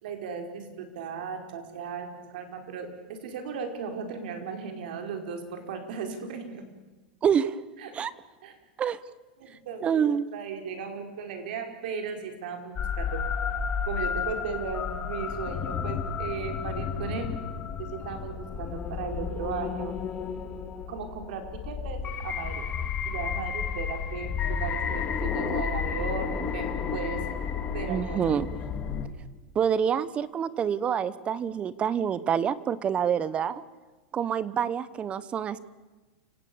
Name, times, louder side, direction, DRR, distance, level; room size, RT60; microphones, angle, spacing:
voice 1, 0.0-2.9 3.2-6.6 7.8-7.9 8.4-8.5 9.4-13.2 13.9-17.3 17.8-19.9 20.9-22.7 23.1-27.2 27.7-28.4, right 6 dB, 70° right, 5 dB, 5.1 m, -36 dB
voice 2, 7.2-7.6 7.9-8.1 8.8-9.0 9.8-10.3 27.9-28.5 29.5-33.6 34.1-35.6, right 8 dB, 25° right, 17 dB, 0.9 m, -27 dB
sound 1, 12.8-29.1, left 6 dB, 25° left, 2.3 m, -32 dB
29.5 x 17.0 x 7.1 m, 1.2 s
supercardioid pair, 145°, 5 cm